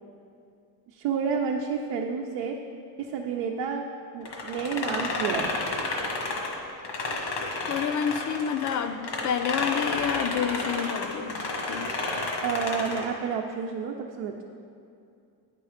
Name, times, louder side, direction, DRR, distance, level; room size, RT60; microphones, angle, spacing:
voice 1, 0.9-2.6 3.0-3.8 4.1-5.5 12.4-14.4, right 6 dB, 85° right, 1 dB, 0.7 m, -30 dB
sound 1, 4.3-8.8 9.0-13.1, left 3 dB, 80° left, 1.5 m, -31 dB
voice 2, 7.7-11.9, left 8 dB, 45° left, 10 dB, 0.5 m, -29 dB
9.0 x 5.3 x 5.0 m, 2.5 s
cardioid pair, 115°, 42 cm